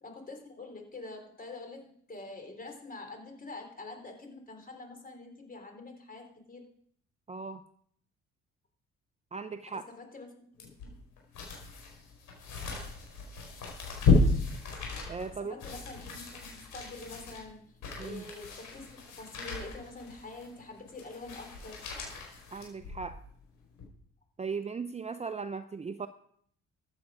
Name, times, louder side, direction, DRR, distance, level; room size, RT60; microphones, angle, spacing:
voice 1, 0.0-6.7 9.8-10.5 15.4-17.6 18.0-21.8, left 3 dB, 30° left, 4 dB, 3.7 m, -46 dB
voice 2, 7.3-7.6 9.3-9.8 15.1-15.6 18.0-18.2 22.5-23.2 24.4-26.1, right 5 dB, 20° right, 10 dB, 0.6 m, -37 dB
sound 1, 10.6-23.2 23.7-23.8, left 3 dB, 80° left, 4.9 m, -33 dB
14.5 x 8.9 x 5.0 m, 0.64 s
cardioid pair, 90°, 30 cm